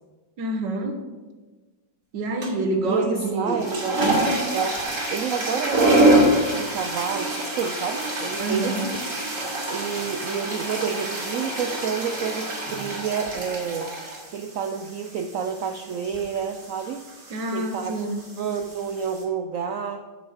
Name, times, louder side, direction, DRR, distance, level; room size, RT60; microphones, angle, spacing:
voice 1, 0.4-0.9 2.1-3.6 4.0-4.4 8.4-8.9 17.3-18.2, right 2 dB, 70° right, 4 dB, 1.9 m, -27 dB
sound 1, 2.4-2.7 3.4-19.2, right 1 dB, 40° right, 2.7 m, -26 dB
voice 2, 2.8-4.1 4.5-4.8 5.1-8.8 9.7-13.9 14.3-17.1 17.5-18.0 18.4-20.1, right 6 dB, 85° right, 7 dB, 0.7 m, -29 dB
9.2 x 6.2 x 7.2 m, 1.3 s
omnidirectional pair, 2.1 m